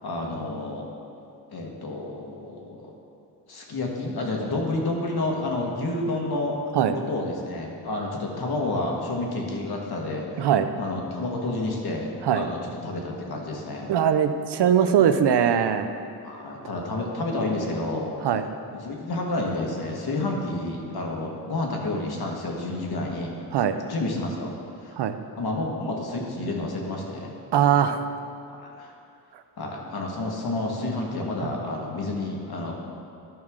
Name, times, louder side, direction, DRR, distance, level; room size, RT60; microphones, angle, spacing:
voice 1, 0.0-0.9 1.5-2.9 3.5-6.6 6.9-10.5 10.8-13.9 16.2-18.1 18.7-23.3 23.8-24.5 24.8-24.9 25.4-27.3 28.5-28.9 29.6-32.7, left 2 dB, 65° left, -1 dB, 1.5 m, -30 dB
voice 2, 10.4-10.7 12.2-12.5 13.9-15.9 18.2-18.5 23.5-23.8 25.0-25.2 27.5-28.0 31.4-31.5, right 8 dB, 85° right, 9 dB, 0.6 m, -21 dB
12.0 x 6.2 x 3.6 m, 2.6 s
wide cardioid pair, 100°, 40 cm